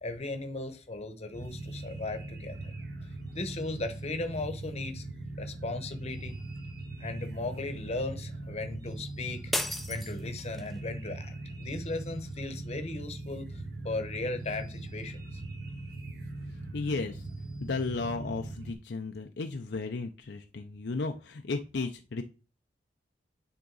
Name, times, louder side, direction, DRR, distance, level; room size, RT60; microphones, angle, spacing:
voice 1, 0.0-2.7 3.3-5.0 5.4-6.3 7.0-9.5 9.9-11.3 11.6-15.4, left 2 dB, 35° left, 1.0 m, -37 dB
sound 1, 1.3-18.7, right 2 dB, 60° right, 1.6 m, -41 dB
sound 2, 9.5-10.8, left 1 dB, ahead, 0.5 m, -34 dB
voice 2, 16.7-17.2 17.6-22.2, left 3 dB, 65° left, 0.5 m, -34 dB
9.6 x 3.8 x 3.9 m
head